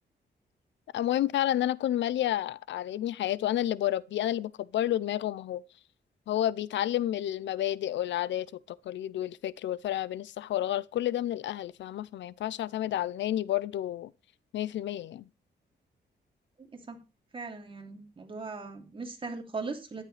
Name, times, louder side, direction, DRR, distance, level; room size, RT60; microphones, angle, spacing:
voice 1, 0.9-5.6 6.3-14.1 14.5-15.2, left 12 dB, 85° left, 0.5 m, -30 dB
voice 2, 16.6-17.0 17.3-20.0, right 4 dB, 30° right, 2.9 m, -39 dB
13.0 x 11.0 x 3.3 m
wide cardioid pair, 130°, 18 cm